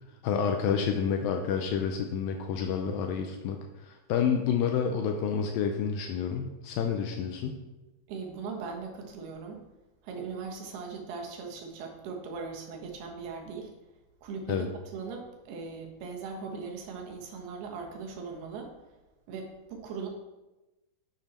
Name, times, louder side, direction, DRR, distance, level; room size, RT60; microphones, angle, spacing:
voice 1, 0.2-3.6 3.9-7.6 14.5-14.7, left 7 dB, 80° left, 4 dB, 2.2 m, -29 dB
voice 2, 8.1-9.6 10.0-13.7 14.2-18.7 19.3-20.1, right 5 dB, 85° right, 1 dB, 3.4 m, -39 dB
9.4 x 7.1 x 4.3 m, 1.1 s
omnidirectional pair, 4.5 m